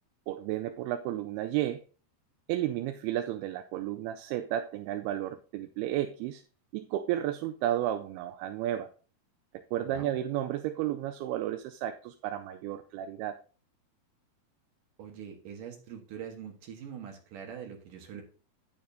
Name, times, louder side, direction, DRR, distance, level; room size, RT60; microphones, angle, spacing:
voice 1, 0.3-1.8 2.5-6.4 6.7-8.9 9.5-13.4, right 12 dB, 80° right, 8 dB, 2.4 m, -32 dB
voice 2, 9.8-10.1 15.0-18.2, right 8 dB, 65° right, 3 dB, 2.4 m, -43 dB
10.5 x 8.8 x 2.7 m, 0.38 s
omnidirectional pair, 4.7 m